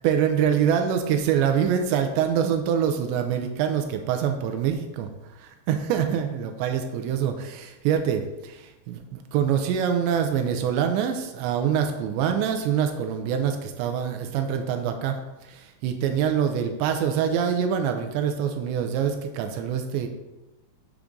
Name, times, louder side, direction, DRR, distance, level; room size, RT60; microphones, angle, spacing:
voice 1, 0.0-15.2 15.4-20.1, right 8 dB, 85° right, 6 dB, 2.7 m, -25 dB
7.1 x 3.6 x 5.2 m, 1.0 s
omnidirectional pair, 5.1 m